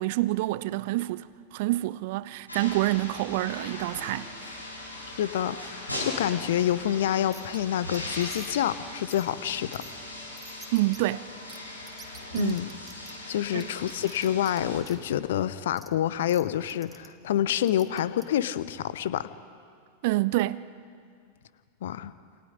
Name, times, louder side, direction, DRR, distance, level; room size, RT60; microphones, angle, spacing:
voice 1, 0.0-4.3 10.7-11.3 12.3-12.6 13.5-13.7 20.0-20.6, right 18 dB, 50° right, 0.6 m, -27 dB
sound 1, 2.5-14.8, left 1 dB, 85° left, 5.7 m, -39 dB
voice 2, 5.2-9.9 12.3-12.7 13.3-19.3 21.8-22.1, left 11 dB, 60° left, 0.9 m, -27 dB
sound 2, 7.3-7.6 7.9-8.6 9.1-9.3 9.7-9.9 10.4-11.0 11.5-11.6 11.9-13.1 13.6-14.6 14.8-15.0 15.8-15.9 16.3-16.4 16.7-17.1 17.7-18.2, right 4 dB, 10° right, 2.1 m, -48 dB
29.0 x 28.5 x 5.2 m
figure-of-eight pair, 90°, 0 cm